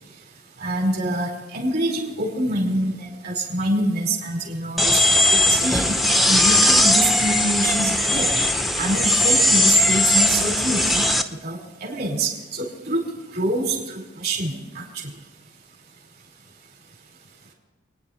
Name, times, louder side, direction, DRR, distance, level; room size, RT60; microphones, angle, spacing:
voice 1, 0.6-5.0 5.3-6.0 6.2-8.3 8.8-11.0 11.4-13.0 13.3-13.8 14.2-14.8, right 1 dB, 55° right, 0 dB, 4.5 m, -25 dB
sound 1, 4.8-11.2, left 1 dB, ahead, 0.7 m, -18 dB
29.5 x 10.0 x 4.4 m, 1.2 s
head